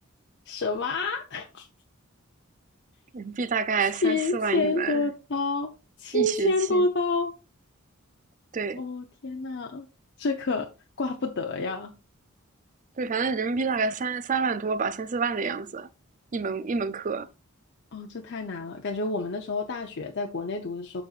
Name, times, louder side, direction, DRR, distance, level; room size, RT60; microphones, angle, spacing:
voice 1, 0.5-1.7 4.0-5.7 6.0-7.3 8.8-9.9 10.2-10.7 11.0-11.9 17.9-21.0, left 3 dB, 55° left, 0.7 m, -28 dB
voice 2, 3.1-5.0 6.1-6.8 8.5-8.8 13.0-15.9 16.3-17.3, right 4 dB, 40° right, 0.5 m, -28 dB
11.5 x 4.2 x 2.4 m
head